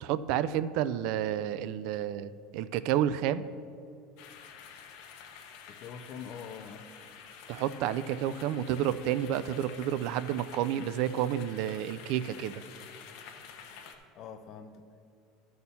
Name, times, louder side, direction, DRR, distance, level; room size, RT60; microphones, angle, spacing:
voice 1, 0.0-3.4 7.5-12.5, right 10 dB, 55° right, 14 dB, 0.3 m, -30 dB
sound 1, 4.2-13.9, left 7 dB, 60° left, 0.9 m, -49 dB
voice 2, 5.7-7.0 14.1-14.9, left 7 dB, 40° left, 6 dB, 0.5 m, -44 dB
12.0 x 4.3 x 6.8 m, 2.5 s
cardioid pair, 165°, 0 cm